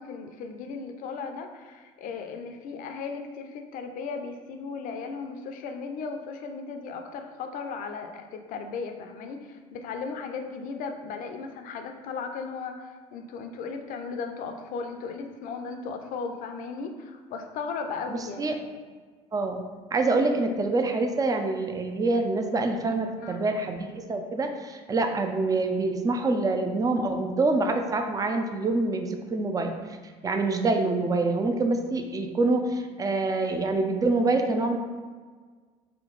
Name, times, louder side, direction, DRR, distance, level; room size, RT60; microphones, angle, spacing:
voice 1, 0.0-18.6 23.2-23.4, left 5 dB, 60° left, 5 dB, 0.5 m, -36 dB
voice 2, 18.1-18.5 19.3-19.6 19.9-30.0 30.2-34.8, right 3 dB, 20° right, 5 dB, 0.5 m, -26 dB
4.3 x 2.2 x 3.9 m, 1.5 s
hypercardioid pair, 75°, 16 cm